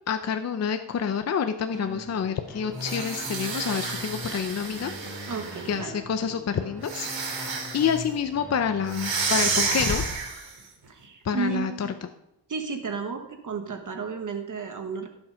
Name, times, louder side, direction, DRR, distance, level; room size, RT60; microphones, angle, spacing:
voice 1, 0.1-4.9 5.2-5.3 5.7-7.1 7.4-10.0 11.2-11.9, left 7 dB, 35° left, 8 dB, 0.6 m, -28 dB
sound 1, 1.7-9.8, left 1 dB, ahead, 3.4 m, -41 dB
sound 2, 2.7-5.7 6.8-8.0 8.9-10.6, right 4 dB, 80° right, 3.0 m, -30 dB
sound 3, 3.9-6.6 8.9-9.0 9.6-10.3, left 4 dB, 60° left, 3.3 m, -40 dB
voice 2, 5.3-5.9 10.9-12.0 12.5-15.1, right 5 dB, 45° right, 5 dB, 1.2 m, -33 dB
17.5 x 7.2 x 5.1 m, 0.81 s
wide cardioid pair, 170°, 44 cm